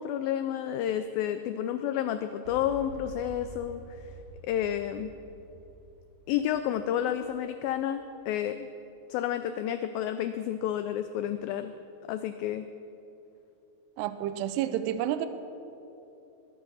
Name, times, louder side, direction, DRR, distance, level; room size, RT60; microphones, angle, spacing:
voice 1, 0.0-4.1 4.4-5.1 6.3-8.7 9.1-11.7 12.1-12.7, left 10 dB, 85° left, 10 dB, 2.0 m, -30 dB
Boom, 2.4-8.3, right 1 dB, 25° right, 3.0 m, -49 dB
voice 2, 14.0-15.3, right 11 dB, 85° right, 11 dB, 2.7 m, -30 dB
21.5 x 8.1 x 6.3 m, 2.9 s
omnidirectional pair, 4.7 m